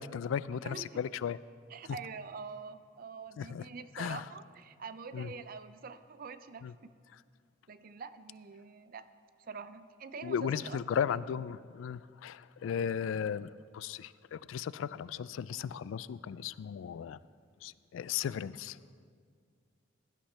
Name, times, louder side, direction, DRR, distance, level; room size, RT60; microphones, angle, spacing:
voice 1, 0.0-1.4 3.4-3.6 4.0-4.2 5.1-5.3 6.6-6.7 10.2-17.2 17.6-18.8, left 8 dB, 85° left, 19 dB, 0.3 m, -36 dB
voice 2, 0.5-1.0 1.7-6.7 7.7-9.1 9.4-11.0, right 5 dB, 50° right, 12 dB, 0.5 m, -45 dB
16.5 x 11.5 x 3.3 m, 2.1 s
head